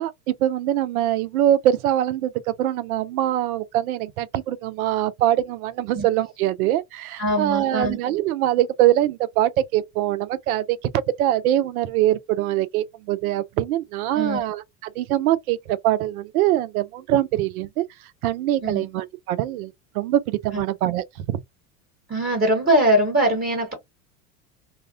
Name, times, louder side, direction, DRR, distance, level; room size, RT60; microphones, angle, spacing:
voice 1, 0.0-10.8 11.2-14.6 15.0-17.8 18.2-21.4, right 13 dB, 80° right, 0.5 m, -23 dB
voice 2, 7.2-8.0 14.1-14.5 18.6-18.9 20.5-20.6 22.1-23.7, right 1 dB, 20° right, 1.0 m, -21 dB
2.3 x 2.0 x 2.7 m
hypercardioid pair, 100°, 42 cm